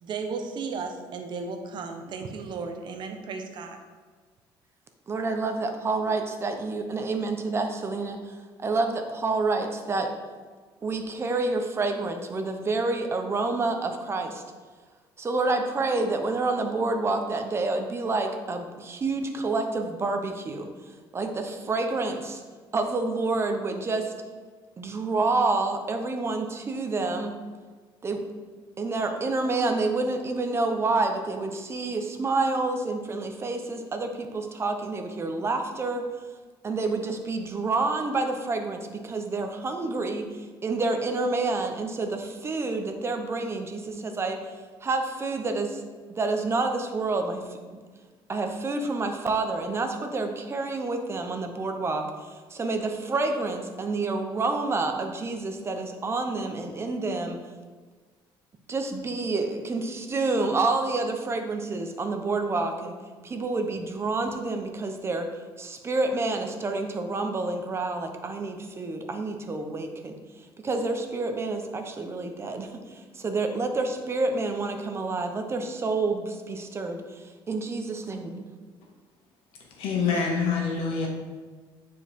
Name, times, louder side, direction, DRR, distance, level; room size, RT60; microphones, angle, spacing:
voice 1, 0.0-3.8, right 4 dB, 55° right, 5 dB, 0.9 m, -35 dB
voice 2, 5.1-10.1 10.8-14.4 15.2-20.7 21.1-22.4 22.7-24.1 24.8-27.4 28.0-28.2 28.8-36.1 36.6-44.5 44.8-45.8 46.1-47.6 48.3-57.4 58.7-63.0 63.2-65.3 65.6-78.5, right 3 dB, 30° right, 5 dB, 0.8 m, -28 dB
voice 3, 79.8-81.1, left 5 dB, 80° left, 0 dB, 1.6 m, -26 dB
9.7 x 4.7 x 3.6 m, 1.5 s
cardioid pair, 125°, 9 cm